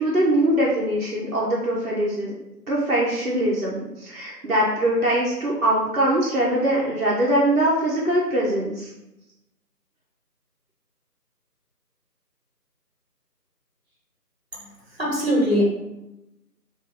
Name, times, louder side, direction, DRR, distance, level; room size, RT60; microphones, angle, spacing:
voice 1, 0.0-2.3 2.7-8.9, right 1 dB, 60° right, -6 dB, 0.8 m, -22 dB
voice 2, 14.5-15.6, equal, 40° right, -4 dB, 1.1 m, -23 dB
3.5 x 2.6 x 3.6 m, 0.93 s
figure-of-eight pair, 175°, 49 cm